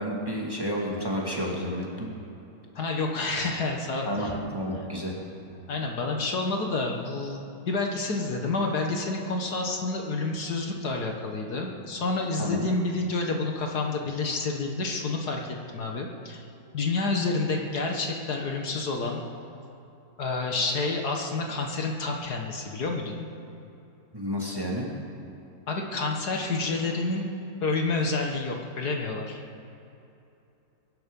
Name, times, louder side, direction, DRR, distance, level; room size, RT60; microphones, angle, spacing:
voice 1, 0.0-2.1 4.0-5.1 12.4-12.7 24.1-24.9, equal, 15° right, -2 dB, 2.1 m, -30 dB
voice 2, 2.8-4.4 5.7-15.4 15.7-16.4 16.7-19.2 20.2-23.3 25.7-27.3 27.6-29.4, left 3 dB, 60° left, 2 dB, 1.9 m, -29 dB
23.0 x 11.0 x 5.4 m, 2.8 s
omnidirectional pair, 1.9 m